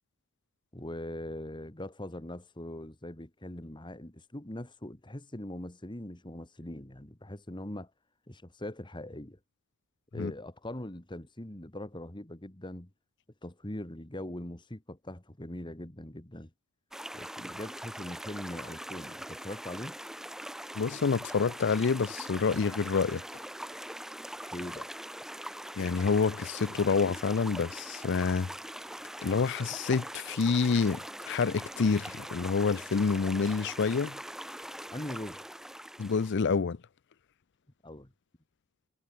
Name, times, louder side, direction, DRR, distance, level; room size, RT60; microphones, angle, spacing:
voice 1, 0.7-7.9 8.3-9.4 10.1-12.9 13.4-16.5 17.1-20.0 24.5-24.9 34.9-35.4 37.8-38.1, left 1 dB, 20° left, 1.9 m, -41 dB
sound 1, 16.9-36.3, right 1 dB, ahead, 0.4 m, -42 dB
voice 2, 20.8-23.2 25.8-28.5 29.2-34.2 36.0-36.8, left 5 dB, 55° left, 0.5 m, -28 dB
head